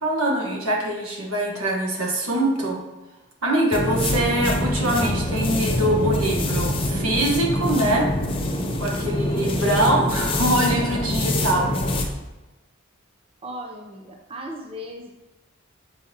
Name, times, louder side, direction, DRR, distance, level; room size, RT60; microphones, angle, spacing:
voice 1, 0.0-2.8 3.4-8.1 8.8-11.7, right 1 dB, 80° right, 0 dB, 1.3 m, -23 dB
sound 1, 3.7-12.1, left 1 dB, 25° left, 0.5 m, -25 dB
voice 2, 13.4-15.1, equal, 25° right, 0 dB, 0.5 m, -36 dB
7.1 x 4.7 x 2.8 m, 1.1 s
head